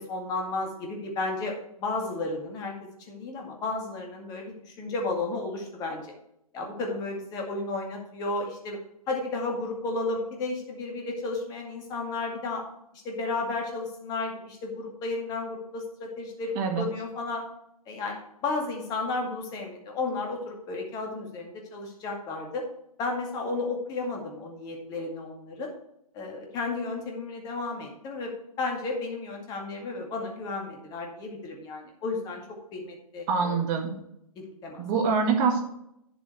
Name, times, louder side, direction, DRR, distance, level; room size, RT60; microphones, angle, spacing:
voice 1, 0.0-1.5 1.8-2.7 3.1-6.0 6.5-8.8 9.1-12.6 12.9-17.4 17.9-22.7 23.0-25.7 26.1-28.3 28.6-32.4 32.7-33.6 34.4-34.8, left 3 dB, 20° left, 1 dB, 2.1 m, -33 dB
voice 2, 16.6-16.9 33.3-34.0 34.8-35.6, right 5 dB, 25° right, 3 dB, 1.8 m, -25 dB
9.4 x 7.4 x 4.6 m, 0.79 s
figure-of-eight pair, 125°, 19 cm